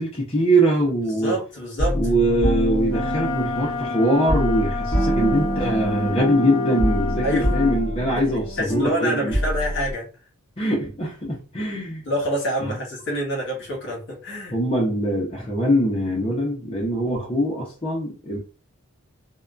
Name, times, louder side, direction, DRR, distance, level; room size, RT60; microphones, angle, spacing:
voice 1, 0.0-1.4 1.9-9.3 10.6-12.0 12.6-12.8 14.5-18.4, right 1 dB, 30° left, 0.6 m, -22 dB
voice 2, 1.0-2.0 7.2-7.5 8.2-8.3 8.6-10.1 12.1-14.5, equal, 55° left, 1.1 m, -26 dB
sound 1, 1.8-9.9, equal, 15° left, 0.9 m, -25 dB
Wind instrument woodwind instrument, 2.9-7.8, left 5 dB, 70° left, 0.7 m, -30 dB
2.7 x 2.2 x 2.3 m
head